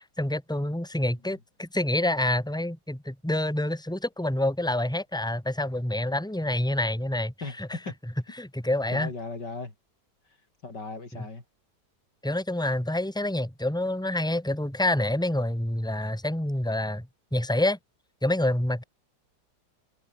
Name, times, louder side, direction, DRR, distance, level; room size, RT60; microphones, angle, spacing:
voice 1, 0.0-7.7 8.4-9.1 12.2-17.1 17.3-17.8 18.2-18.8, left 1 dB, ahead, 3.6 m, -27 dB
voice 2, 7.4-8.0 8.9-9.7 10.6-11.4, left 3 dB, 75° left, 5.2 m, -37 dB
omnidirectional pair, 1.9 m